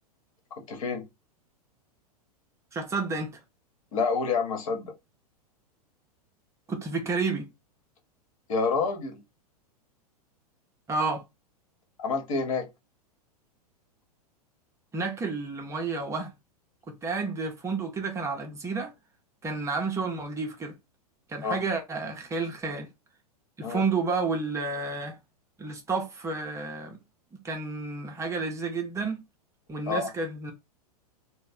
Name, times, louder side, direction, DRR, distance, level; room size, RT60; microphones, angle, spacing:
voice 1, 0.6-1.1 3.9-4.9 8.5-9.2 12.0-12.7 21.4-21.6 23.6-23.8 29.9-30.1, left 4 dB, 55° left, 1.1 m, -28 dB
voice 2, 2.7-3.4 6.7-7.5 10.9-11.2 14.9-16.3 16.9-18.9 19.4-20.7 21.3-22.9 23.6-25.2 25.6-27.0 27.4-29.2 29.7-30.5, right 4 dB, 15° right, 0.6 m, -31 dB
3.1 x 2.1 x 4.1 m
figure-of-eight pair, 95°, 20 cm